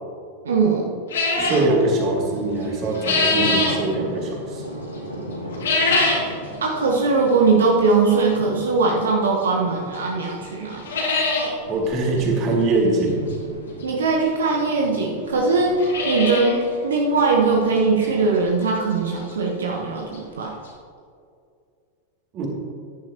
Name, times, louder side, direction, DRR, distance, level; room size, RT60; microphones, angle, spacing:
voice 1, 0.4-1.0 6.6-10.8 13.8-20.5, right 4 dB, 65° right, 0 dB, 1.3 m, -20 dB
sound 1, 1.1-1.7 2.6-3.8 5.5-6.3 6.7-6.8 7.6-7.7 9.4-9.5 9.9-10.0 10.3-10.4 10.7-11.5 11.8-11.9 12.2-12.3 13.8-13.9 14.7-14.8 15.0-15.1 15.6-16.6 16.9-17.0 17.5-17.6 18.0-18.1 19.9-20.0 20.1-20.2 20.7-20.8, left 3 dB, 65° left, 2.5 m, -22 dB
voice 2, 1.3-4.6 11.7-13.2 22.3-22.5, right 2 dB, 35° right, -1 dB, 2.7 m, -22 dB
Thunder, 2.5-19.5, equal, 85° right, 1.6 m, -37 dB
14.0 x 10.5 x 3.0 m, 2.3 s
figure-of-eight pair, 90°, 0 cm